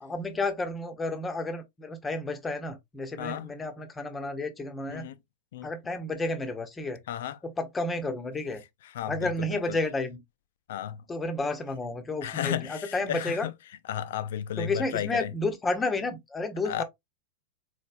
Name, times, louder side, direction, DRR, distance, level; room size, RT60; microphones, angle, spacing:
voice 1, 0.0-5.1 5.6-7.0 7.4-8.6 9.1-10.2 11.1-13.5 14.6-16.8, left 2 dB, 15° left, 0.7 m, -31 dB
voice 2, 3.2-3.5 4.9-5.2 5.5-5.7 7.1-7.4 8.9-9.8 10.7-11.0 12.2-13.5 13.9-15.3 16.6-16.8, left 11 dB, 55° left, 0.4 m, -33 dB
3.9 x 3.2 x 2.3 m
figure-of-eight pair, 90°, 0 cm